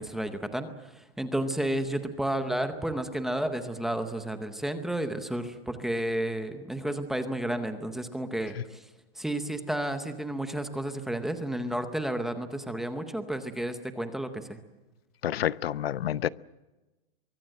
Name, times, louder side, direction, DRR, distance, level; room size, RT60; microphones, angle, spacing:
voice 1, 0.0-8.9 9.2-14.6, right 1 dB, ahead, 0.7 m, -32 dB
voice 2, 15.2-16.3, left 11 dB, 85° left, 0.8 m, -28 dB
24.0 x 23.5 x 7.6 m
supercardioid pair, 175°, 29 cm